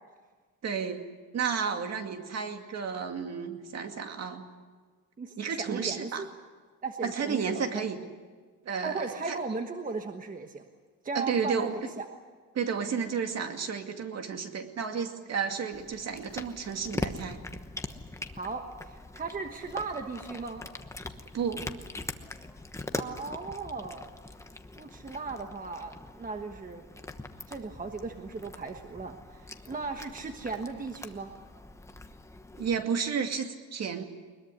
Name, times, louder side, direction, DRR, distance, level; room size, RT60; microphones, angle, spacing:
voice 1, 0.6-1.1 1.3-4.5 5.4-6.2 7.0-8.0 8.7-9.4 11.1-11.7 12.5-17.4 21.3-21.6 32.6-34.0, right 6 dB, 50° right, 5 dB, 2.3 m, -32 dB
voice 2, 5.2-6.3 6.8-7.9 8.8-10.6 11.0-12.1 18.3-20.6 22.9-24.1 24.8-26.8 27.5-31.3, right 4 dB, 25° right, 5 dB, 1.3 m, -37 dB
Cat, 15.7-32.8, left 2 dB, 10° left, 1.1 m, -42 dB
21.5 x 21.5 x 9.8 m, 1.5 s
cardioid pair, 155°, 34 cm